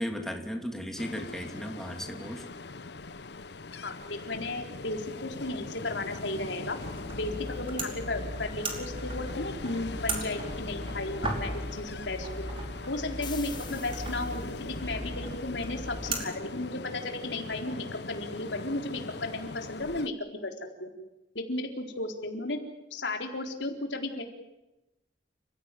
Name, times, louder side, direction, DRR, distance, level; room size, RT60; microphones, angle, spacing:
voice 1, 0.0-2.4, equal, ahead, 3 dB, 2.7 m, -35 dB
Ocean, 1.0-20.1, left 3 dB, 65° left, 0.9 m, -41 dB
voice 2, 3.8-6.8 7.1-12.5 12.9-20.1 20.4-20.5 20.8-20.9 21.3-22.6 22.9-24.2, left 2 dB, 85° left, 4 dB, 4.1 m, -34 dB
sound 1, 6.8-16.2, right 2 dB, 30° right, 5.0 m, -37 dB
sound 2, 13.2-14.8, left 7 dB, 25° left, 2.6 m, -46 dB
29.5 x 16.5 x 9.3 m, 0.98 s
head